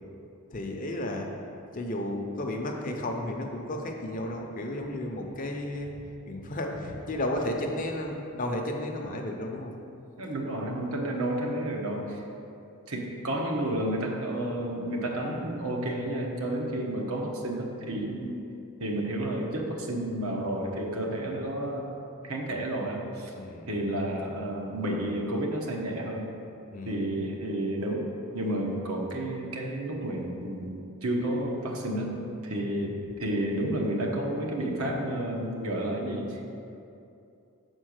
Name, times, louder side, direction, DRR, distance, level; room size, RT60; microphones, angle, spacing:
voice 1, 0.5-1.3 1.7-9.8 22.5-22.6 23.4-23.7 26.7-27.0, left 1 dB, 35° left, 2 dB, 0.7 m, -33 dB
voice 2, 10.2-12.2 12.9-18.4 18.8-21.9 22.2-23.3 23.7-26.3 26.9-28.1 28.3-36.4, right 1 dB, 70° right, 0 dB, 1.1 m, -31 dB
6.9 x 4.4 x 6.4 m, 2.7 s
head